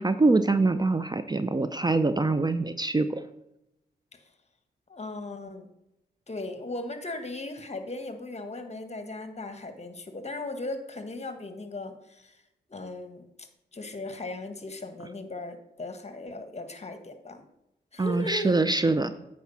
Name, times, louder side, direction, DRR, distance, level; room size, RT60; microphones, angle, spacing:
voice 1, 0.0-3.2 18.0-19.1, right 3 dB, 20° right, 11 dB, 0.5 m, -24 dB
voice 2, 4.9-5.7 6.3-12.4 12.7-17.4 17.9-18.6, left 2 dB, 35° left, 7 dB, 1.3 m, -37 dB
8.4 x 4.7 x 5.7 m, 0.85 s
cardioid pair, 50°, 19 cm